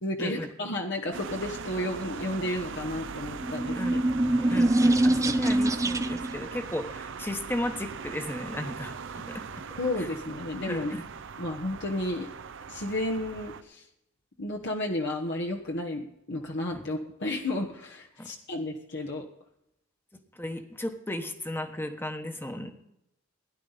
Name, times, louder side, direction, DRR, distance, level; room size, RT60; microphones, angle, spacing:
voice 1, 0.0-3.8 4.4-4.5 9.8-10.9 11.4-12.3 12.7-13.8 14.4-19.2, left 1 dB, 60° left, 0 dB, 1.3 m, -32 dB
sound 1, 1.1-13.6, right 5 dB, 65° right, 0.7 m, -40 dB
sound 2, 3.4-6.4, right 1 dB, 15° right, 0.6 m, -24 dB
voice 2, 4.5-8.9 9.3-9.4 10.0-10.1 10.7-11.0 16.7-16.9 18.2-18.3 20.3-22.7, left 1 dB, 10° left, 6 dB, 1.2 m, -35 dB
17.0 x 10.5 x 4.1 m, 0.82 s
head